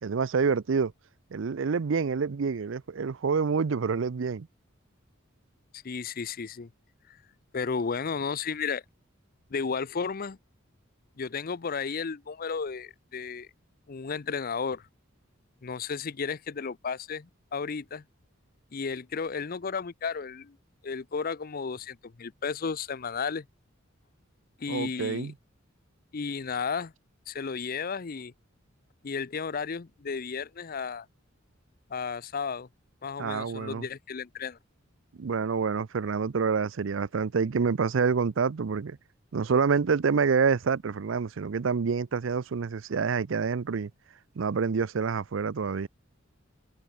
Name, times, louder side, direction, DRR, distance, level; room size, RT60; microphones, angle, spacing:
voice 1, 0.0-0.9 1.3-4.5 24.7-25.3 33.2-33.9 35.2-39.0 39.3-43.9 44.4-45.9, right 5 dB, 65° right, 0.5 m, -27 dB
voice 2, 5.7-6.7 7.5-8.8 9.5-10.4 11.2-13.5 13.9-14.8 15.6-18.0 18.7-20.6 20.8-23.5 24.6-25.3 26.1-26.9 27.3-28.3 29.0-31.1 31.9-32.7 33.0-34.6, left 5 dB, 45° left, 0.6 m, -33 dB
head